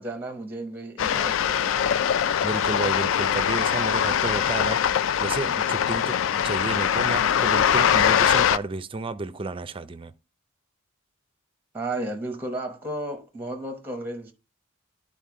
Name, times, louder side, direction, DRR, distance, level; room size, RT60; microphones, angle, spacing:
voice 1, 0.0-1.8 11.7-14.3, right 1 dB, 10° right, 0.9 m, -33 dB
sound 1, 1.0-8.6, left 9 dB, 65° left, 0.3 m, -22 dB
voice 2, 2.4-10.1, right 3 dB, 25° right, 0.4 m, -32 dB
11.0 x 4.0 x 3.6 m
head